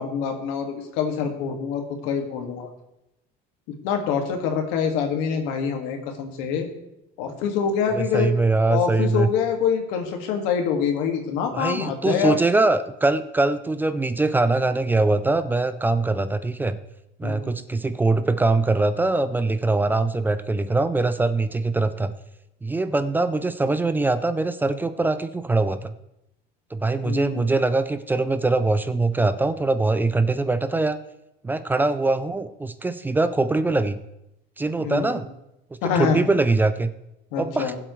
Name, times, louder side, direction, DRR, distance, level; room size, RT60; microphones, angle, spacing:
voice 1, 0.0-2.7 3.8-6.7 7.2-8.3 8.7-12.4 17.2-17.6 27.0-27.7 34.8-35.2 35.8-36.2 37.3-37.8, left 7 dB, 85° left, 4 dB, 1.9 m, -25 dB
voice 2, 7.9-9.3 11.5-16.8 17.2-22.1 22.6-25.9 26.7-31.0 31.4-34.0 34.6-35.3 36.0-36.9 37.4-37.7, right 3 dB, 10° right, 12 dB, 0.4 m, -22 dB
20.0 x 7.8 x 3.1 m, 0.87 s
cardioid pair, 155°, 19 cm